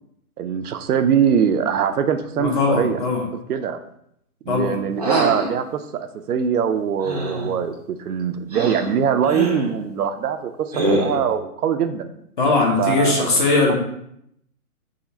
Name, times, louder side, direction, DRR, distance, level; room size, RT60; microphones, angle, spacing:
voice 1, 0.4-3.0 3.5-3.8 4.5-12.1 12.8-13.4 13.7-13.8, right 8 dB, 85° right, 9 dB, 0.5 m, -22 dB
voice 2, 2.4-3.3 4.5-4.8 12.4-13.7, left 3 dB, 35° left, 0 dB, 0.6 m, -19 dB
sound 1, 5.0-5.5 7.0-7.5 8.5-8.9 9.2-9.7 10.7-11.3, right 1 dB, 30° right, 0.4 m, -24 dB
3.7 x 2.1 x 4.1 m, 0.74 s
hypercardioid pair, 155°, 44 cm